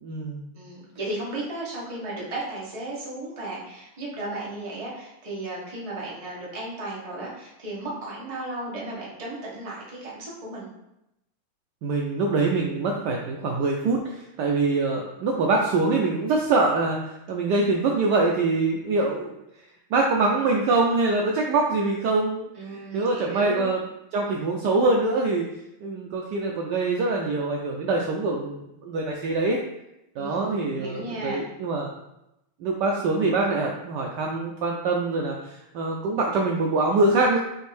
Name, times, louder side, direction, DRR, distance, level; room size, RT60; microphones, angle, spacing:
voice 1, 0.0-0.5 11.8-19.3 19.9-23.8 24.1-25.5 25.8-29.6 30.2-31.9 32.6-37.4, right 3 dB, 85° right, 0 dB, 0.9 m, -24 dB
voice 2, 0.5-10.7 22.5-23.7 30.2-31.4, right 2 dB, 25° right, -5 dB, 0.7 m, -35 dB
6.2 x 2.6 x 3.3 m, 0.87 s
omnidirectional pair, 2.4 m